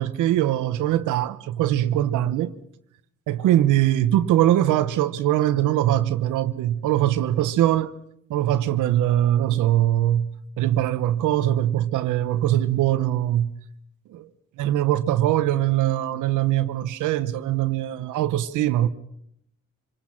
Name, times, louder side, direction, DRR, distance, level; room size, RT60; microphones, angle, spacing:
voice 1, 0.0-2.5 3.3-7.9 8.3-10.3 10.6-13.5 14.1-14.3 14.6-18.9, right 12 dB, 85° right, 1.1 m, -22 dB
26.0 x 19.5 x 5.9 m
cardioid pair, 90°, 30 cm